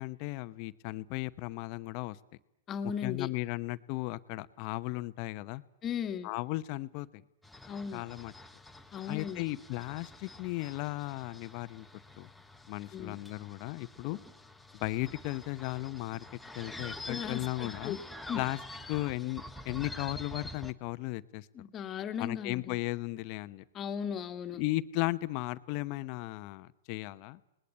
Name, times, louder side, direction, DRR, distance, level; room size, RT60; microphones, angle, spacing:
voice 1, 0.0-2.2 3.0-5.6 6.2-7.2 7.9-8.3 9.1-11.8 12.2-12.3 12.7-14.2 14.7-16.3 16.5-18.0 18.3-18.6 18.9-21.7 22.2-23.6 24.6-27.4, left 20 dB, 45° left, 14 dB, 1.0 m, -36 dB
voice 2, 2.7-3.3 5.8-6.3 7.7-8.1 8.9-9.4 12.9-13.2 17.1-18.0 18.3-18.4 21.5-22.8 23.7-24.6, left 8 dB, 25° left, 9 dB, 1.8 m, -37 dB
sound 1, 7.4-20.7, left 2 dB, 5° left, 1.2 m, -47 dB
29.5 x 20.0 x 8.3 m, 0.85 s
hypercardioid pair, 130°, 0 cm